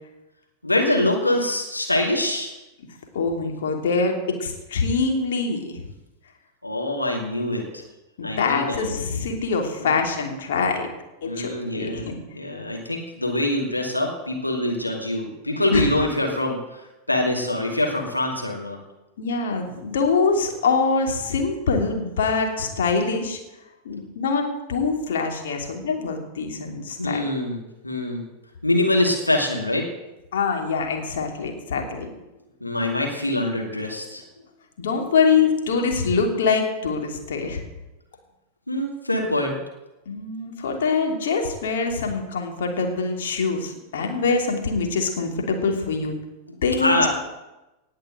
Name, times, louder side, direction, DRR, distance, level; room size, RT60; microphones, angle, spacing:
voice 1, 0.6-2.6 6.6-7.8 8.2-9.0 9.8-10.0 11.2-12.0 12.3-18.8 27.0-28.2 28.6-29.8 32.6-34.2 38.7-39.6 46.5-47.1, left 1 dB, 85° left, 0 dB, 2.5 m, -24 dB
voice 2, 3.1-5.8 8.2-10.9 11.2-12.1 15.7-15.9 19.2-23.4 23.8-27.2 30.3-32.1 34.8-37.6 40.1-46.2 46.6-47.1, left 4 dB, 60° left, 2 dB, 3.0 m, -24 dB
18.5 x 6.7 x 7.8 m, 0.99 s
figure-of-eight pair, 90°, 0 cm